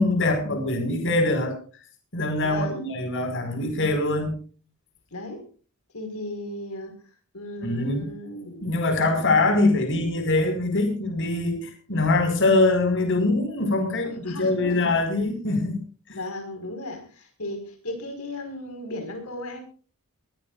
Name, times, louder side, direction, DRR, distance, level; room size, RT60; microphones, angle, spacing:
voice 1, 0.0-1.6 2.1-4.4 7.6-8.1 8.6-15.8 16.1-16.2, left 2 dB, 60° left, 7 dB, 5.5 m, -23 dB
voice 2, 2.4-2.8 5.1-5.5 5.9-6.9 7.3-8.8 9.1-9.2 14.0-14.9 16.1-19.6, left 1 dB, 75° left, 6 dB, 5.3 m, -36 dB
23.0 x 16.5 x 2.5 m, 0.40 s
head